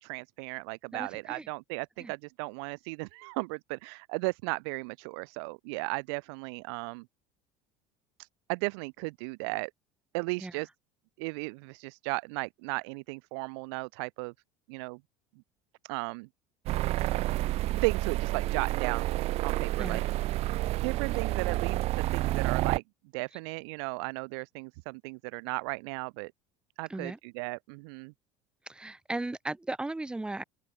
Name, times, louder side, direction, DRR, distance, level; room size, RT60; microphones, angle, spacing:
voice 1, 0.0-7.1 8.2-9.7 10.1-10.7 11.2-14.3 14.7-15.0 15.8-16.3 17.8-19.1 19.4-20.0 20.8-22.8 23.1-26.3 26.8-28.1, right 31 dB, 85° right, 2.0 m, -35 dB
voice 2, 0.9-1.5 2.0-2.1 10.4-10.5 19.8-20.0 26.9-27.2 28.7-30.4, right 2 dB, 5° right, 1.0 m, -36 dB
sound 1, 16.7-22.8, right 17 dB, 50° right, 1.1 m, -29 dB
open air
cardioid pair, 145°, 13 cm